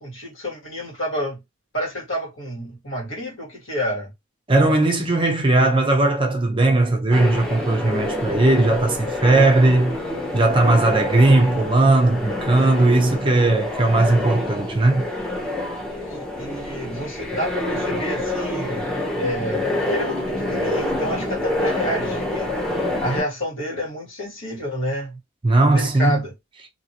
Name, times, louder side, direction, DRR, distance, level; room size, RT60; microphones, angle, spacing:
voice 1, 0.0-1.4 1.7-4.1 15.9-22.5 23.0-25.2 25.6-26.3, equal, 65° left, 1.8 m, -29 dB
voice 2, 4.5-10.0 10.3-15.0 25.4-26.2, right 2 dB, 25° right, 0.6 m, -18 dB
sound 1, 7.1-23.2, left 1 dB, 5° left, 0.8 m, -27 dB
2.9 x 2.7 x 2.8 m
head